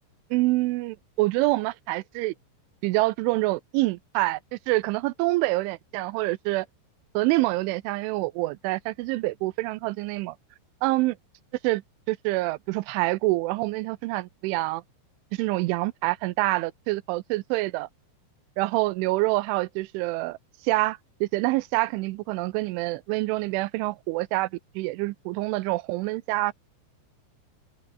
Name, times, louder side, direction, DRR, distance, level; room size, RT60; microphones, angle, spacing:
voice 1, 0.3-2.3 2.8-6.7 7.1-10.4 10.8-11.1 11.6-11.8 12.1-14.8 15.4-17.9 18.6-20.4 20.6-24.5 24.8-26.5, right 20 dB, 85° right, 3.1 m, -26 dB
open air
omnidirectional pair, 5.6 m